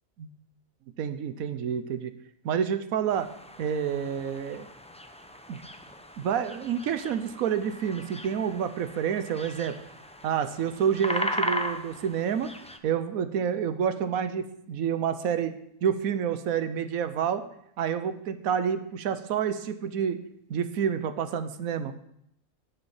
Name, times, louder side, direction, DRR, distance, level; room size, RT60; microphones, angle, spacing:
voice 1, 1.0-2.1 2.4-3.3 3.6-4.7 5.5-5.6 6.2-9.8 10.2-12.5 12.8-15.5 15.8-17.4 17.8-20.2 20.5-21.9, right 8 dB, 80° right, 10 dB, 1.2 m, -28 dB
sound 1, 3.1-12.8, left 1 dB, 10° left, 0.5 m, -37 dB
11.5 x 6.9 x 7.1 m, 0.75 s
omnidirectional pair, 1.5 m